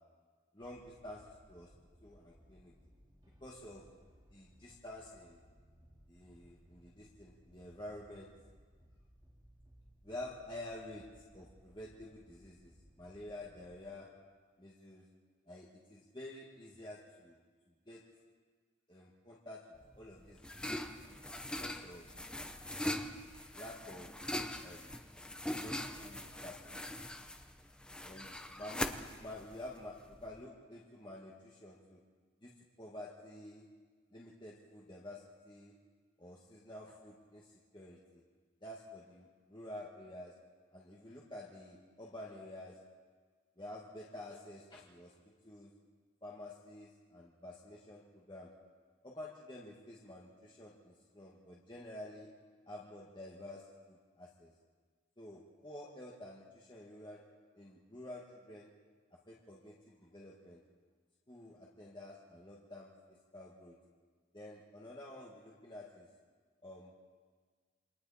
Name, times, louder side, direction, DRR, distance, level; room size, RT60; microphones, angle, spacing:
voice 1, 0.5-1.7 2.0-2.7 3.4-3.8 4.3-5.4 6.1-8.3 10.0-11.0 11.3-12.7 13.0-14.1 14.6-15.0 15.5-17.4 17.9-18.0 18.9-19.6 20.0-21.0 21.6-22.1 22.8-24.2 24.6-24.9 25.6-27.1 28.0-28.9 29.2-32.0 32.4-32.5 32.8-33.6 34.1-35.7 36.2-38.2 38.6-40.3 40.7-42.8 43.6-45.1 45.4-45.7 46.2-48.5 49.0-52.3 52.7-54.5 55.2-57.2 57.5-58.7 59.3-60.6 61.3-62.9 63.3-63.7 64.3-66.1 66.6-67.0, left 1 dB, 25° left, -4 dB, 1.9 m, -50 dB
sound 1, 0.6-13.9, equal, 25° right, 2.8 m, -64 dB
sound 2, 19.8-30.4, left 1 dB, 5° left, 0.8 m, -42 dB
28.5 x 24.0 x 4.3 m, 1.5 s
head